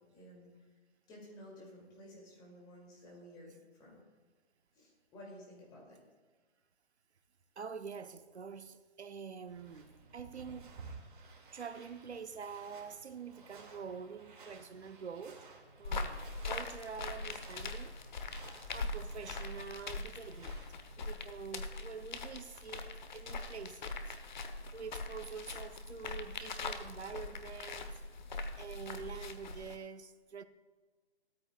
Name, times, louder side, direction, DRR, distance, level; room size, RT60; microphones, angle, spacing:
voice 1, 0.1-0.5 1.1-4.0 4.7-6.0, left 1 dB, 10° left, 2.5 m, -53 dB
voice 2, 7.6-10.7 11.5-15.4 15.8-17.9 18.7-20.6 21.0-23.9 24.7-28.0 28.6-30.4, right 6 dB, 75° right, 0.8 m, -46 dB
sound 1, 9.5-21.0, right 4 dB, 45° right, 2.3 m, -55 dB
sound 2, 15.8-29.8, left 3 dB, 40° left, 1.0 m, -42 dB
16.5 x 13.5 x 2.3 m
hypercardioid pair, 155°, 34 cm